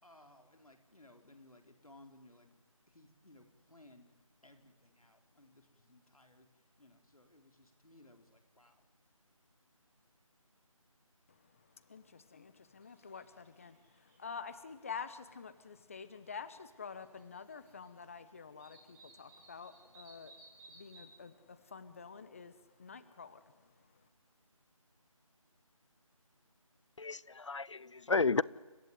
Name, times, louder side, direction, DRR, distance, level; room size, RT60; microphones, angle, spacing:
voice 1, 0.0-2.5 2.9-4.1 4.4-6.5 6.8-8.8, left 1 dB, 85° left, 4.3 m, -61 dB
voice 2, 11.3-24.1, left 5 dB, 25° left, 1.1 m, -48 dB
sound 1, 12.8-13.3 13.5-14.7 16.2-16.3 16.9-17.9 18.1-18.2 18.6-21.0, right 2 dB, 5° right, 2.3 m, -59 dB
voice 3, 27.0-28.4, left 4 dB, 55° left, 0.7 m, -32 dB
29.5 x 13.5 x 9.6 m
figure-of-eight pair, 165°, 18 cm